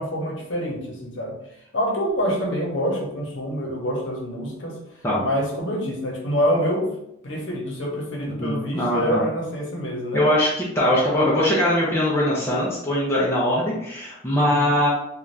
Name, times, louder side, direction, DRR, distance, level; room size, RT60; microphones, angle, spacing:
voice 1, 0.0-1.4 1.7-4.8 5.2-6.9 7.2-10.2 14.4-14.7, equal, 70° left, -1 dB, 0.9 m, -26 dB
voice 2, 8.2-9.2 10.1-10.5 10.7-14.9, left 1 dB, 15° left, -6 dB, 0.5 m, -21 dB
2.6 x 2.3 x 3.2 m, 0.79 s
head